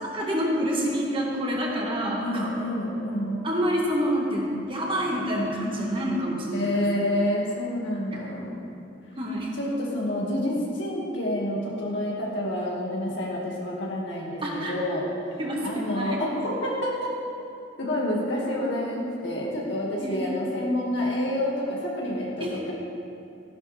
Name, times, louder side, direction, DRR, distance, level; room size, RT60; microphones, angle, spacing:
voice 1, 0.1-2.5 3.4-6.7 9.2-9.5 14.4-14.7 15.4-16.2 20.0-20.3 22.4-22.6, equal, 25° right, -2 dB, 1.8 m, -27 dB
voice 2, 2.2-3.4 6.5-8.7 9.5-15.1 15.6-17.1 17.8-22.7, left 1 dB, 75° left, -5 dB, 2.2 m, -28 dB
14.5 x 11.0 x 3.6 m, 2.7 s
head